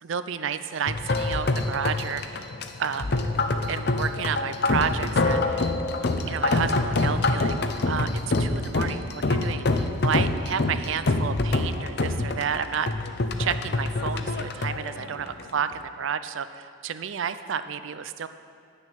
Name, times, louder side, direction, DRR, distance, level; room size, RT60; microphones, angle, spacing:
voice 1, 0.0-2.4 2.8-3.1 3.7-5.7 6.3-7.6 7.9-8.1 8.4-12.9 13.4-18.3, right 7 dB, 70° right, 12 dB, 0.5 m, -31 dB
sound 1, 0.9-15.7, left 2 dB, 55° left, 0.6 m, -26 dB
10.0 x 6.6 x 7.1 m, 2.4 s
head